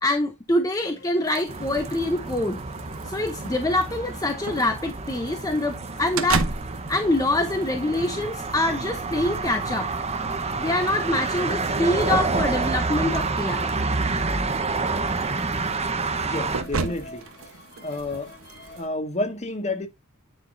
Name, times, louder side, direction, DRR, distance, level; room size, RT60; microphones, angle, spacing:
voice 1, 0.0-2.6 3.0-6.5 6.9-9.9 10.6-13.7, left 1 dB, 15° left, 0.8 m, -25 dB
sound 1, 0.8-18.8, left 2 dB, 50° left, 3.6 m, -51 dB
sound 2, 1.2-18.9, right 4 dB, 65° right, 1.2 m, -37 dB
sound 3, 1.5-16.6, right 3 dB, 30° right, 1.0 m, -28 dB
voice 2, 16.2-17.3 17.8-18.3 18.7-19.9, left 2 dB, 30° left, 1.7 m, -30 dB
9.8 x 6.0 x 2.7 m
head